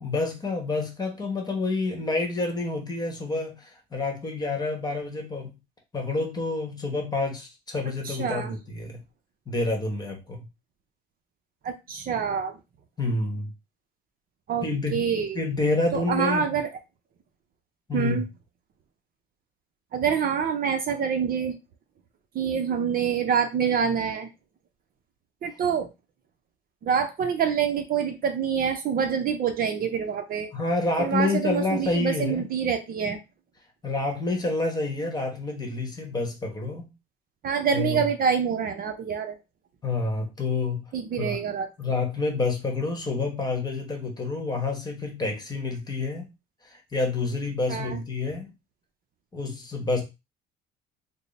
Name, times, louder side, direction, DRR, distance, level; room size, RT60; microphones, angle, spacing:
voice 1, 0.0-5.5 5.9-9.0 9.5-10.5 13.0-13.5 14.6-15.0 15.3-16.5 17.9-18.2 30.5-32.5 33.8-36.9 37.7-38.0 39.8-40.8 41.2-41.4 41.8-46.3 46.6-48.5 49.3-50.0, left 3 dB, 20° left, 1.0 m, -28 dB
voice 2, 8.0-8.6 11.6-12.5 14.5-15.4 15.9-16.7 17.9-18.2 19.9-21.6 22.3-24.3 25.4-25.9 26.8-30.5 31.0-33.2 37.4-39.4 40.9-41.7 47.7-48.0, right 7 dB, 45° right, 0.5 m, -26 dB
3.6 x 2.0 x 3.9 m
cardioid pair, 135°, 21 cm